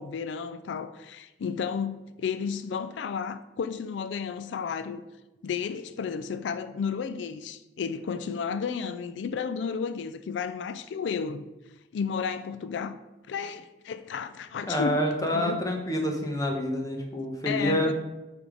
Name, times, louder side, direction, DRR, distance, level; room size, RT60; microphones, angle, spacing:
voice 1, 0.0-5.0 5.4-11.5 11.9-13.0 13.3-15.0 15.3-15.7 17.4-17.9, left 6 dB, 85° left, 0.3 m, -32 dB
voice 2, 14.7-17.9, left 1 dB, 20° left, 1.0 m, -27 dB
9.0 x 3.5 x 4.9 m
head